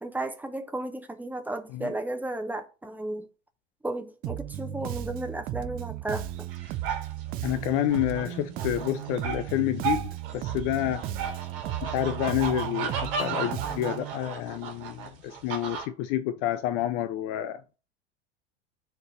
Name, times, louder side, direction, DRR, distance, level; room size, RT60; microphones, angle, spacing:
voice 1, 0.0-3.2 3.8-6.5, right 2 dB, 5° right, 0.9 m, -34 dB
Bass guitar, 4.2-14.1, right 12 dB, 25° right, 0.4 m, -35 dB
sound 1, 6.3-15.9, right 7 dB, 55° right, 2.3 m, -35 dB
voice 2, 7.4-11.0 11.8-17.6, left 12 dB, 35° left, 0.5 m, -29 dB
6.9 x 4.0 x 6.3 m
figure-of-eight pair, 80°, 34 cm